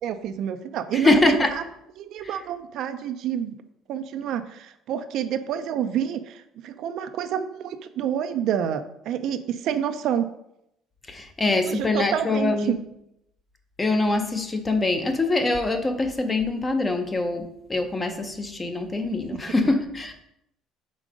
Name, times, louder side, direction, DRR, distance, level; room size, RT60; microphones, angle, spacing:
voice 1, 0.0-1.6 2.0-3.6 3.9-10.3 11.6-12.8, right 9 dB, 65° right, 10 dB, 0.4 m, -28 dB
voice 2, 0.9-1.5 2.2-2.4 11.1-12.8 13.8-20.1, left 2 dB, 20° left, 7 dB, 0.7 m, -24 dB
5.2 x 3.7 x 4.9 m, 0.79 s
cardioid pair, 125°, 0 cm